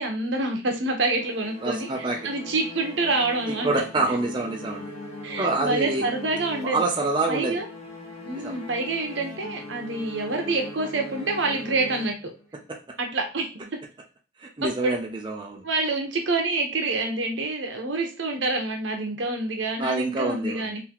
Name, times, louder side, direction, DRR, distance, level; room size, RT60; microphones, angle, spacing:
voice 1, 0.0-3.7 5.2-6.8 7.3-7.7 8.3-12.3 13.0-13.8 14.8-15.0 15.6-20.8, right 2 dB, 80° right, 3 dB, 1.0 m, -27 dB
sound 1, 1.2-12.6, left 2 dB, 30° left, 1.4 m, -40 dB
voice 2, 1.6-2.3 3.5-4.9 5.4-6.1 6.6-7.6 8.4-8.5 12.7-12.8 14.4-15.6 19.8-20.8, right 2 dB, 25° right, 1 dB, 0.5 m, -27 dB
3.9 x 2.8 x 2.9 m, 0.31 s
head